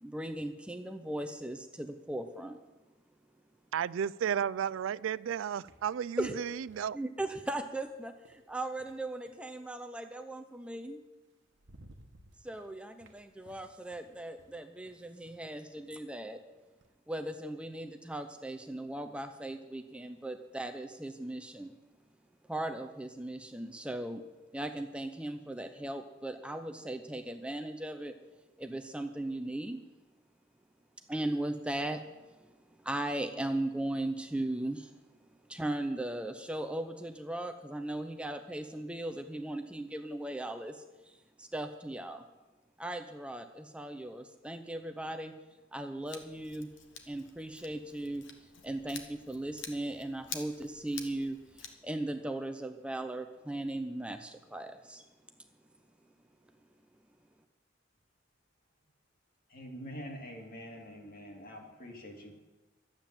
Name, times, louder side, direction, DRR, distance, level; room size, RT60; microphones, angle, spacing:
voice 1, 0.0-2.6 6.2-6.3 6.9-11.0 12.4-16.4 17.1-21.7 22.5-24.2 24.5-28.2 28.6-29.8 31.1-32.0 32.3-34.9 35.5-42.2 42.8-45.3 45.7-46.7 47.1-55.1, right 1 dB, 5° right, 0.6 m, -38 dB
voice 2, 3.7-7.0, right 8 dB, 85° right, 0.3 m, -33 dB
sound 1, 5.0-9.5 10.8-10.9 11.3-16.9, right 1 dB, 65° right, 1.1 m, -61 dB
Scissors, 46.0-51.7, left 6 dB, 70° left, 1.4 m, -48 dB
voice 3, 59.5-62.4, equal, 50° left, 2.5 m, -45 dB
12.5 x 8.9 x 7.5 m
head